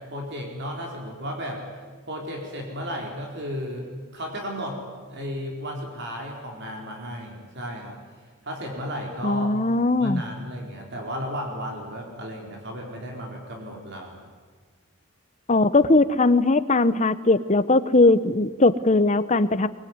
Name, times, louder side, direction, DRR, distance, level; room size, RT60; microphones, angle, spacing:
voice 1, 0.0-1.6 2.1-3.9 4.1-4.8 5.1-8.0 8.4-9.5 10.0-14.2, equal, 55° right, 0 dB, 4.4 m, -34 dB
voice 2, 9.2-10.2 15.5-19.7, left 2 dB, 35° left, 13 dB, 1.0 m, -19 dB
23.0 x 23.0 x 9.6 m, 1.5 s
head